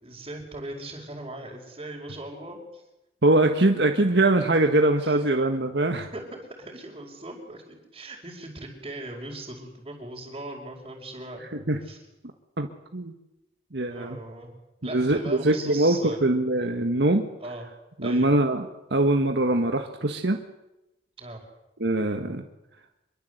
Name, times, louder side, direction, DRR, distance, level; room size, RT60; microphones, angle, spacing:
voice 1, 0.0-2.8 5.0-5.2 6.1-11.4 11.8-12.0 13.9-14.5 14.8-16.2 17.4-17.6 18.0-18.3 21.2-21.4, right 1 dB, 30° right, -6 dB, 5.0 m, -39 dB
voice 2, 3.2-6.1 11.7-11.8 12.6-13.1 13.7-14.2 14.9-17.3 18.0-20.4 21.8-22.4, right 2 dB, 80° right, 5 dB, 1.6 m, -23 dB
26.0 x 23.0 x 8.1 m, 0.94 s
head